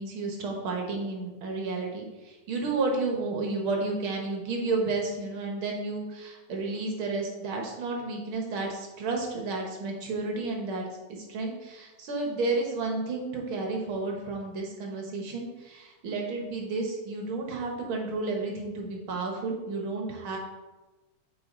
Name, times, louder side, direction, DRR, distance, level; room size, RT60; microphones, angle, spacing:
voice 1, 0.0-10.8 11.3-20.4, right 3 dB, 55° right, 0 dB, 1.7 m, -31 dB
8.6 x 5.4 x 3.8 m, 1.1 s
omnidirectional pair, 3.3 m